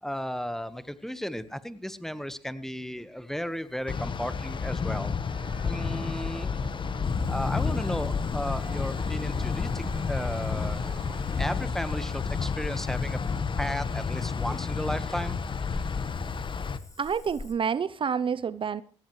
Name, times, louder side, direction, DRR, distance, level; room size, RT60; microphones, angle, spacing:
voice 1, 0.0-5.1 5.6-6.6 7.3-11.1 11.4-13.2 13.6-16.4, equal, 5° left, 1.3 m, -35 dB
sound 1, 3.9-16.8, left 5 dB, 40° left, 1.2 m, -30 dB
sound 2, 5.3-11.6, right 1 dB, 20° right, 5.8 m, -44 dB
Cricket / Frog, 7.0-17.5, left 2 dB, 25° left, 3.3 m, -46 dB
voice 2, 17.0-18.8, right 6 dB, 45° right, 0.6 m, -28 dB
20.0 x 16.5 x 3.2 m
supercardioid pair, 65°, 12 cm